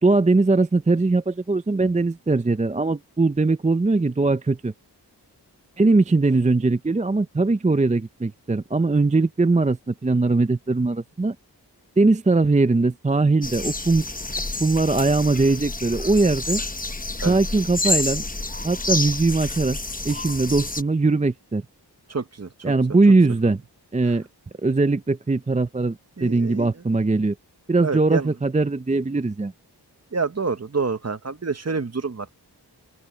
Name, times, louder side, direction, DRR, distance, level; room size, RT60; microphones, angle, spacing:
voice 1, 0.0-4.7 5.8-11.4 12.0-14.0 14.6-16.6 17.2-18.2 18.6-19.8 20.0-21.6 22.6-23.6 23.9-24.3 24.6-27.4 27.7-29.5, right 3 dB, 20° right, 0.5 m, -20 dB
sound 1, 13.4-20.8, left 2 dB, 20° left, 0.9 m, -29 dB
voice 2, 22.1-22.5 26.2-26.7 27.8-28.3 30.1-32.4, right 4 dB, 40° right, 0.9 m, -27 dB
open air
wide cardioid pair, 65°, 41 cm